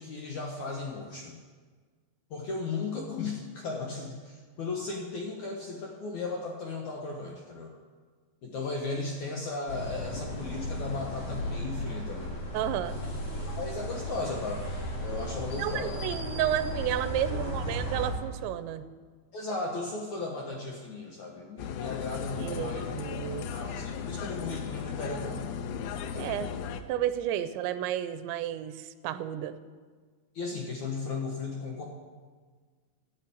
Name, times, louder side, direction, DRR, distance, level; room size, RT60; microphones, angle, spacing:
voice 1, 0.0-1.4 2.3-7.7 8.4-12.4 13.6-14.6 15.0-16.0 17.3-17.8 19.3-23.0 23.2-25.5 30.3-31.8, left 3 dB, 65° left, 0 dB, 1.9 m, -36 dB
sound 1, 9.7-18.1, left 1 dB, 40° left, 2.5 m, -35 dB
voice 2, 12.5-13.0 15.6-18.9 22.4-23.5 26.1-26.5 26.9-29.6, right 11 dB, 85° right, 12 dB, 3.0 m, -32 dB
sound 2, 21.6-26.8, left 7 dB, 90° left, 2.9 m, -36 dB
13.5 x 8.8 x 8.5 m, 1.5 s
omnidirectional pair, 5.1 m